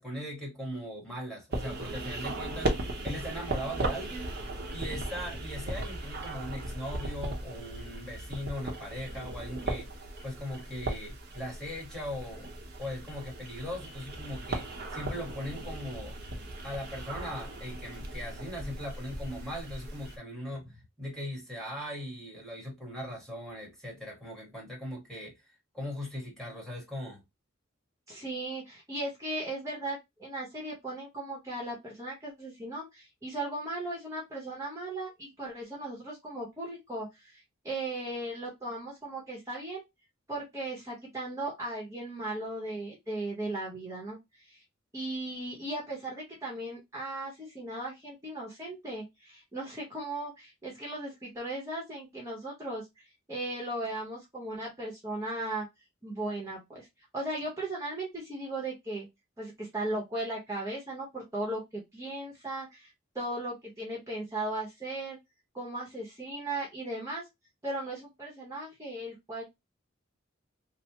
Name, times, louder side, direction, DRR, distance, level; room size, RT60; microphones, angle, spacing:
voice 1, 0.0-2.8 3.0-4.4 4.7-9.9 10.2-12.5 12.8-16.2 16.6-20.7 21.0-25.4 25.7-27.2, left 1 dB, 5° left, 1.3 m, -39 dB
sound 1, 1.5-20.2, right 2 dB, 55° right, 0.7 m, -37 dB
voice 2, 28.1-39.8 40.3-44.6 44.9-55.7 56.0-56.9 57.1-59.1 59.4-65.2 65.5-67.2 67.6-69.4, right 2 dB, 15° right, 0.9 m, -37 dB
3.2 x 2.0 x 2.8 m
head